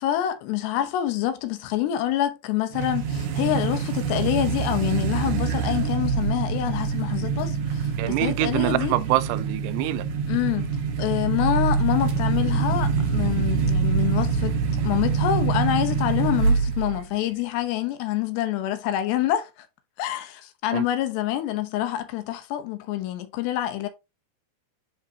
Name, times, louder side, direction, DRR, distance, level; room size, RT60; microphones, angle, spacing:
voice 1, 0.0-8.9 10.3-10.7 11.0-19.5 20.0-23.9, left 12 dB, 85° left, 3.1 m, -26 dB
sound 1, 2.7-17.0, right 5 dB, 70° right, 1.8 m, -25 dB
voice 2, 8.0-10.0 20.7-20.9, right 17 dB, 90° right, 2.7 m, -25 dB
10.0 x 3.6 x 2.8 m
omnidirectional pair, 4.8 m